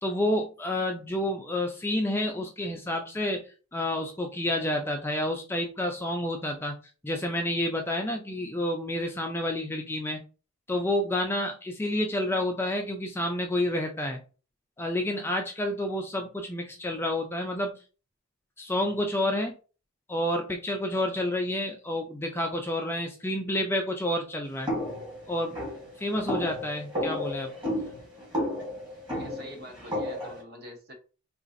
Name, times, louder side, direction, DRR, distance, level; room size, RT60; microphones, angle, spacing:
voice 1, 0.0-3.5 3.7-6.7 7.0-10.2 10.7-14.2 14.8-17.7 18.6-19.5 20.1-24.7 25.3-25.6 26.0-27.5, left 1 dB, 10° left, 0.4 m, -29 dB
sound 1, 24.7-30.4, left 1 dB, 20° right, 1.3 m, -32 dB
voice 2, 29.1-30.9, equal, 50° right, 0.9 m, -45 dB
3.9 x 2.4 x 2.5 m
head